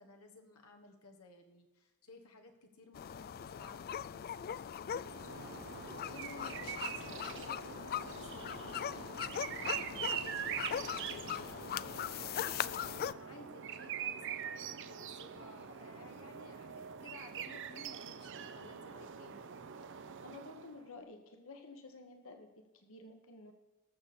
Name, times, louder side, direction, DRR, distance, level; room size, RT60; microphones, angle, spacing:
voice 1, 0.0-19.4, left 3 dB, 85° left, 3 dB, 1.4 m, -56 dB
sound 1, 2.9-13.1, left 9 dB, 45° left, 0.3 m, -40 dB
sound 2, 4.9-20.8, right 8 dB, 55° right, 0.7 m, -44 dB
voice 2, 20.2-23.5, left 3 dB, 65° left, 5 dB, 1.4 m, -52 dB
20.0 x 7.1 x 4.3 m, 1.2 s
head